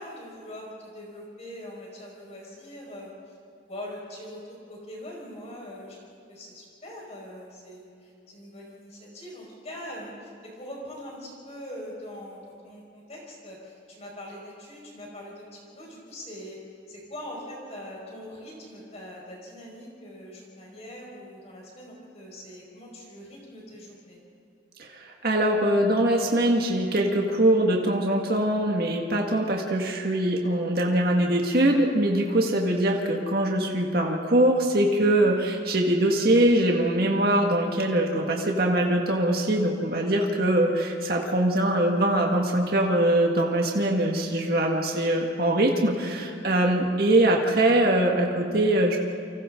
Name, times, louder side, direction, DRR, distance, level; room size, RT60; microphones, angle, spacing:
voice 1, 0.0-3.1 3.7-4.4 4.7-6.0 6.3-10.3 10.5-16.6 16.9-24.2, equal, 35° left, -3 dB, 5.2 m, -42 dB
voice 2, 24.8-49.0, right 1 dB, 50° right, 0 dB, 1.9 m, -23 dB
29.5 x 25.5 x 3.8 m, 2.5 s
head